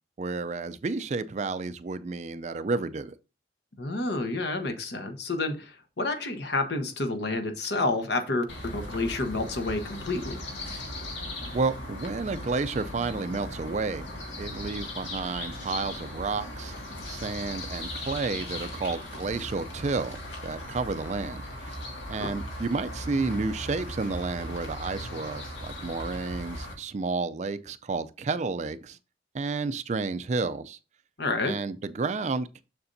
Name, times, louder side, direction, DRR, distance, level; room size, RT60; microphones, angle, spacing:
voice 1, 0.2-3.1 11.5-14.1 14.4-16.7 17.1-21.8 22.1-29.0 29.3-30.8 31.4-32.6, right 4 dB, 40° right, 0.4 m, -31 dB
voice 2, 3.8-10.4 22.2-22.3 31.2-31.6, left 2 dB, 65° left, 1.1 m, -29 dB
sound 1, 8.5-26.7, left 1 dB, 85° left, 2.1 m, -38 dB
6.9 x 6.7 x 2.6 m
head